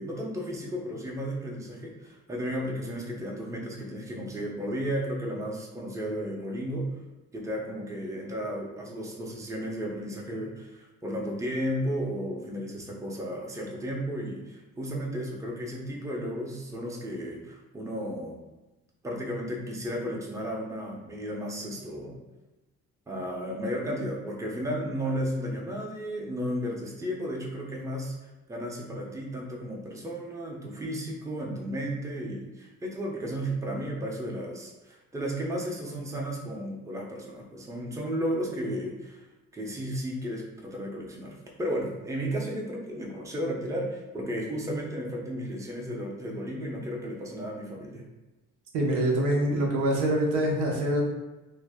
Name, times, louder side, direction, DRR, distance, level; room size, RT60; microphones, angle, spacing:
voice 1, 0.0-6.9 7.3-18.4 19.0-22.2 23.1-39.3 39.5-48.0, equal, 10° right, -2 dB, 0.5 m, -34 dB
voice 2, 48.7-51.0, right 1 dB, 90° right, -1 dB, 0.7 m, -25 dB
2.6 x 2.1 x 3.4 m, 1.1 s
cardioid pair, 90°, 30 cm